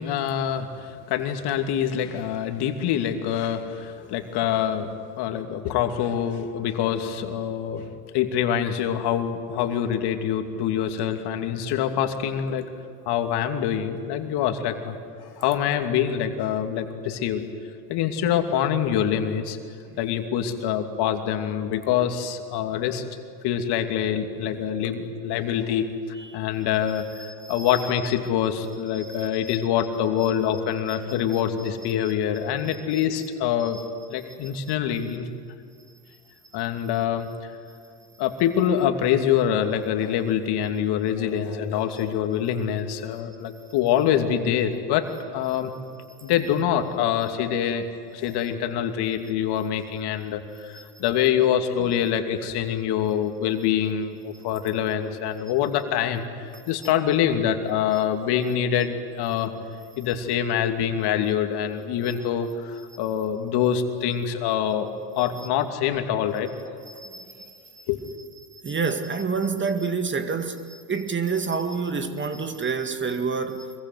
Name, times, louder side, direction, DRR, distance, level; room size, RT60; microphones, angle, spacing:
voice 1, 0.0-4.9 5.2-7.9 8.1-12.7 13.1-17.4 17.9-19.6 20.0-23.0 23.4-25.9 26.3-33.8 34.1-35.3 36.5-37.5 38.2-45.1 45.3-45.7 46.2-47.9 48.1-59.5 60.0-64.9 65.2-66.5 67.9-68.0, left 9 dB, 50° left, 2.8 m, -25 dB
voice 2, 27.2-27.7 28.9-29.3 30.9-31.0 32.9-33.0 33.7-33.9 50.7-50.8 66.9-67.9 68.5-73.7, right 5 dB, 25° right, 2.1 m, -29 dB
25.5 x 23.0 x 9.6 m
hypercardioid pair, 85°, 49 cm